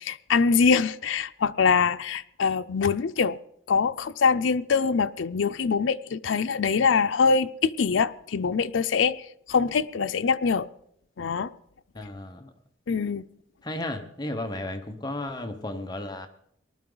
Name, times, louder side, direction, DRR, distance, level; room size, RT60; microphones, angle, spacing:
voice 1, 0.0-3.4 3.7-9.2 9.5-10.7 11.2-11.5 12.9-13.2, left 5 dB, 85° left, 0.5 m, -24 dB
voice 2, 11.9-12.5 13.6-16.3, left 1 dB, 20° left, 0.9 m, -34 dB
19.5 x 12.0 x 3.9 m
head